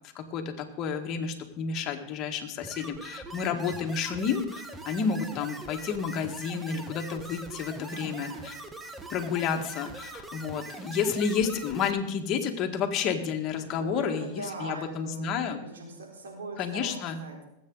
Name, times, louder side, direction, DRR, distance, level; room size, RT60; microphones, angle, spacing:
voice 1, 0.1-8.5 9.1-15.6 16.6-17.2, left 6 dB, 40° left, 4 dB, 1.8 m, -30 dB
sound 1, 2.6-11.9, right 2 dB, 10° right, 1.3 m, -42 dB
voice 2, 7.9-8.5 13.8-17.4, right 2 dB, 90° right, 0 dB, 4.0 m, -41 dB
20.0 x 8.5 x 4.0 m, 0.85 s
hypercardioid pair, 115°, 0 cm